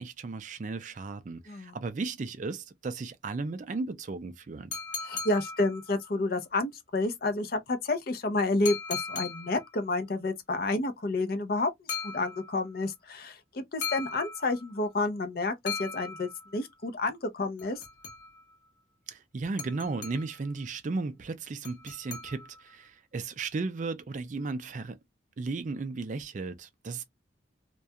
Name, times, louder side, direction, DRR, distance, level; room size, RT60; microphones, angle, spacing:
voice 1, 0.0-4.7 19.1-25.0 25.4-27.0, right 3 dB, 40° right, 0.3 m, -35 dB
sound 1, 4.7-6.2 8.7-9.8 11.9-12.8 13.8-14.8 15.7-16.7 17.6-18.6 19.6-20.5 21.6-22.7, left 5 dB, 70° left, 0.8 m, -39 dB
voice 2, 5.0-17.8, left 2 dB, 50° left, 0.5 m, -30 dB
2.3 x 2.2 x 2.7 m
head